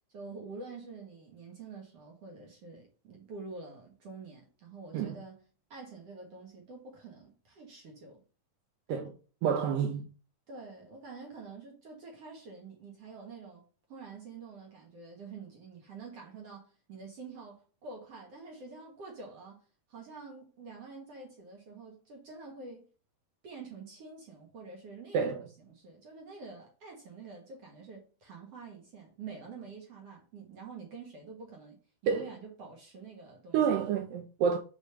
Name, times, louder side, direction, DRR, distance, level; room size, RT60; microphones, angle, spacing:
voice 1, 0.1-5.4 5.7-8.2 10.5-13.6 13.9-22.9 23.4-31.8 32.0-33.6, right 4 dB, 60° right, 1.7 m, -47 dB
voice 2, 9.4-10.1 25.1-25.3 32.1-32.3 33.5-34.6, right 7 dB, 80° right, 2.1 m, -28 dB
5.1 x 4.9 x 5.7 m
omnidirectional pair, 4.5 m